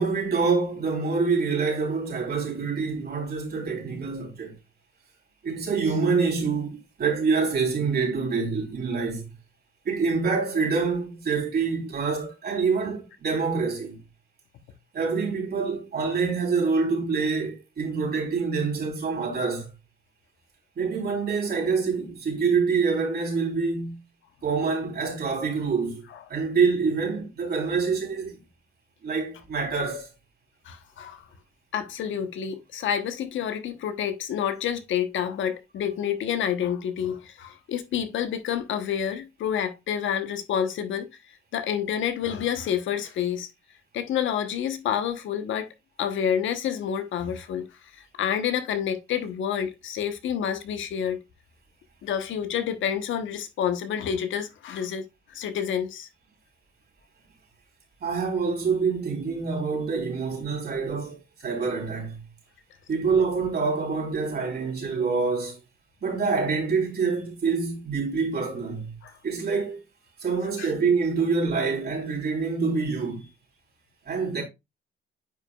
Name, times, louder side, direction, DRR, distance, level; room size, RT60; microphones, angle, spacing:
voice 1, 0.0-4.5 5.4-9.3 9.9-14.0 14.9-19.7 20.8-24.0 24.4-28.4 29.0-30.1 58.0-62.2 62.9-65.6 66.0-68.9 69.2-69.8 70.2-73.3 74.1-74.4, right 5 dB, 55° right, 3.7 m, -26 dB
voice 2, 30.6-31.3 31.7-41.1 41.5-43.5 43.9-45.7 46.0-47.7 47.9-51.2 52.0-55.0 55.3-56.1 69.0-69.1 70.6-70.7, left 9 dB, 75° left, 1.1 m, -28 dB
9.5 x 5.0 x 2.3 m
cardioid pair, 90°, 20 cm